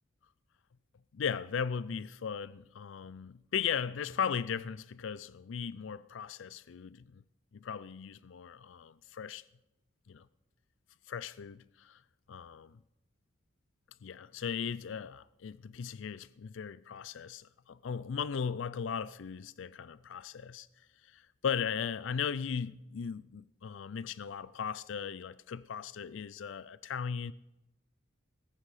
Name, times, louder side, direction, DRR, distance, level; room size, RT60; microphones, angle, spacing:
voice 1, 1.1-7.2 7.5-9.4 10.1-10.3 11.1-12.0 12.3-12.8 14.0-20.7 21.0-27.3, left 7 dB, 75° left, 0.4 m, -37 dB
20.0 x 9.9 x 4.9 m
head